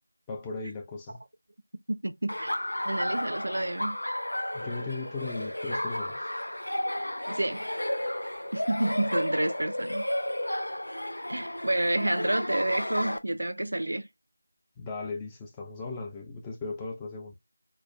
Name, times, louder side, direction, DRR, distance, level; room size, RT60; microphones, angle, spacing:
voice 1, 0.3-1.2 4.5-6.3 14.8-17.3, left 3 dB, 10° left, 0.5 m, -37 dB
voice 2, 1.9-2.6 2.9-4.0 7.3-7.7 8.5-10.1 11.3-14.1, right 1 dB, 65° right, 0.5 m, -29 dB
Laughter, 2.3-13.2, left 1 dB, 75° left, 0.5 m, -32 dB
4.1 x 2.4 x 2.3 m
figure-of-eight pair, 170°, 0 cm